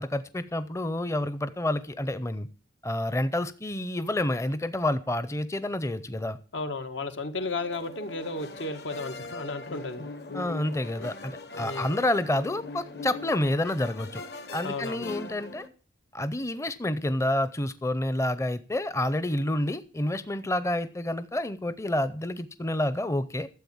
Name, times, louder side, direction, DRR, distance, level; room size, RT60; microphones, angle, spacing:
voice 1, 0.0-2.5 2.8-6.4 10.3-14.2 14.5-15.7 16.1-23.5, left 1 dB, 15° left, 0.5 m, -29 dB
voice 2, 6.5-10.0 11.5-12.0 14.6-15.0, left 3 dB, 90° left, 1.7 m, -34 dB
sound 1, 7.4-15.7, left 3 dB, 60° left, 1.3 m, -41 dB
13.0 x 7.8 x 7.1 m
head